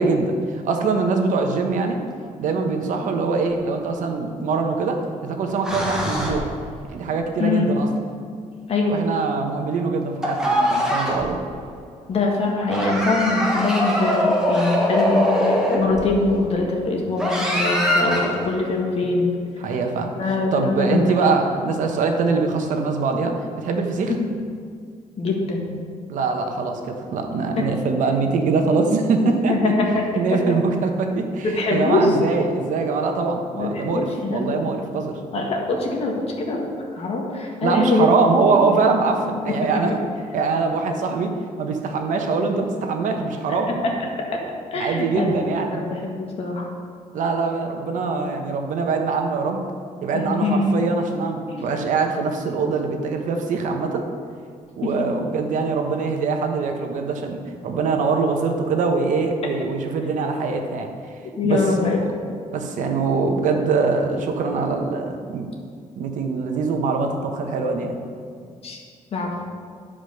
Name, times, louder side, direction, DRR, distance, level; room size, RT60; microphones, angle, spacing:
voice 1, 0.0-2.0 2.4-6.4 6.9-7.9 8.9-11.4 19.6-20.1 20.5-24.1 26.1-29.7 30.1-35.2 37.6-39.9 40.3-43.8 44.7-45.7 47.1-49.6 50.0-54.0 54.8-60.9 61.4-61.6 61.9-62.1 62.5-65.5 66.0-68.0, right 4 dB, 70° right, 4 dB, 1.1 m, -23 dB
sound 1, 3.5-3.6 5.6-6.7 10.2-11.4 12.7-16.2 17.2-18.5, equal, 5° right, 1.5 m, -22 dB
voice 2, 7.4-7.7 8.7-9.0 12.1-19.3 20.2-21.2 25.2-25.7 27.6-27.7 29.5-30.1 31.4-32.1 33.5-34.6 35.3-36.7 36.9-38.1 43.8-43.9 44.7-45.3 45.7-46.7 50.1-50.9 51.5-51.7 54.8-54.9 61.4-62.2 68.6-68.8 69.1-69.3, left 3 dB, 45° left, 0 dB, 1.8 m, -23 dB
11.0 x 5.1 x 6.4 m, 2.1 s
cardioid pair, 155°, 14 cm